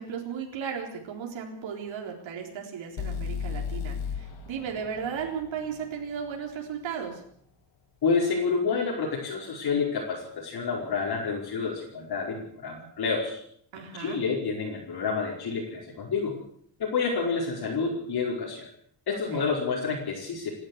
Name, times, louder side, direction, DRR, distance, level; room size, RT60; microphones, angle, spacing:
voice 1, 0.0-7.2 13.7-14.2 19.1-19.5, right 7 dB, 85° right, 0 dB, 4.1 m, -35 dB
sound 1, 3.0-6.9, left 6 dB, 85° left, 3.6 m, -36 dB
voice 2, 8.0-13.4 13.8-16.4 16.8-18.7 19.1-20.6, left 5 dB, 55° left, -4 dB, 5.2 m, -29 dB
29.0 x 12.0 x 8.1 m, 0.65 s
wide cardioid pair, 180°, 45 cm